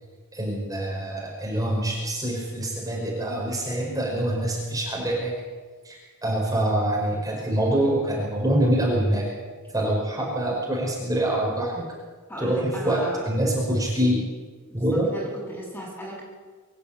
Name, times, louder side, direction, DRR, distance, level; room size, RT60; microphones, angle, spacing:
voice 1, 0.3-5.3 5.8-6.0 6.2-9.3 9.7-11.9 12.4-14.2 14.7-15.1, right 1 dB, 15° right, -4 dB, 5.6 m, -25 dB
voice 2, 12.3-13.2 14.7-16.2, right 1 dB, 10° left, -3 dB, 6.9 m, -36 dB
24.5 x 13.5 x 8.8 m, 1.4 s
head